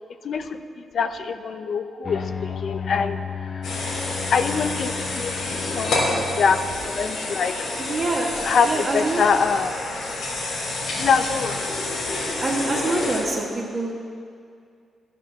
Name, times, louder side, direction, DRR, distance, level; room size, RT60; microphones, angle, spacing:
voice 1, 0.2-3.8 4.3-7.7 8.4-9.7 11.0-11.6, left 5 dB, 55° left, 9 dB, 0.6 m, -24 dB
sound 1, 2.0-7.3, left 6 dB, 25° left, 0.9 m, -34 dB
sound 2, 3.6-13.2, left 2 dB, 90° left, 3.7 m, -28 dB
voice 2, 7.9-8.3 8.7-9.2 12.4-13.9, right 2 dB, 35° right, -3 dB, 1.4 m, -25 dB
11.5 x 8.2 x 6.8 m, 2.3 s
cardioid pair, 130°, 0 cm